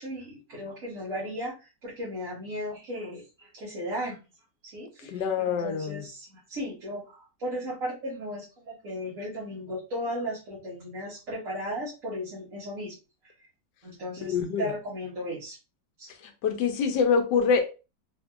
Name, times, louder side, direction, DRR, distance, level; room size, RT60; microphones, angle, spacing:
voice 1, 0.0-4.2 4.6-13.0 13.8-15.6 16.0-16.1, equal, 50° right, 1.4 m, -36 dB
voice 2, 5.1-6.1 14.2-14.7 16.4-17.6, left 6 dB, 80° left, 1.2 m, -25 dB
3.6 x 2.6 x 2.3 m
omnidirectional pair, 1.9 m